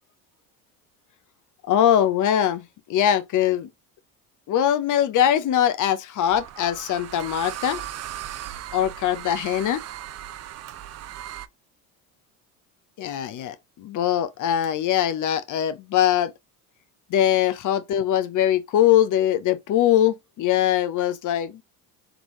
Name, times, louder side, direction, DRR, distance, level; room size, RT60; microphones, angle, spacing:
voice 1, 1.6-2.6 2.9-3.7 4.5-7.8 8.7-9.8 13.0-16.3 17.1-21.6, left 10 dB, 45° left, 0.7 m, -22 dB
sound 1, 6.2-11.5, right 12 dB, 40° right, 0.5 m, -37 dB
3.7 x 3.2 x 3.0 m
hypercardioid pair, 70°, 42 cm